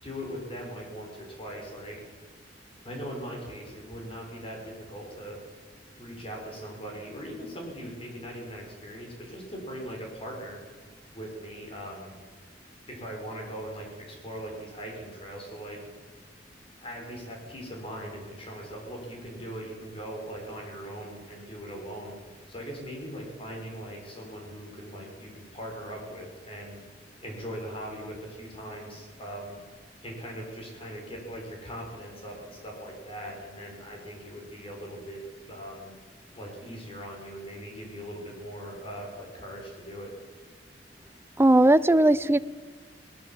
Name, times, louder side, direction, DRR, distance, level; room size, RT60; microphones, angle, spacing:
voice 1, 0.0-2.0 2.8-5.4 5.9-10.6 11.1-12.1 12.9-15.8 16.8-22.1 22.5-26.8 27.2-29.6 30.0-35.9 36.3-40.1, equal, 30° left, 0 dB, 6.3 m, -40 dB
voice 2, 41.4-42.4, right 1 dB, 15° right, 15 dB, 0.6 m, -18 dB
21.5 x 20.0 x 7.7 m, 1.5 s
head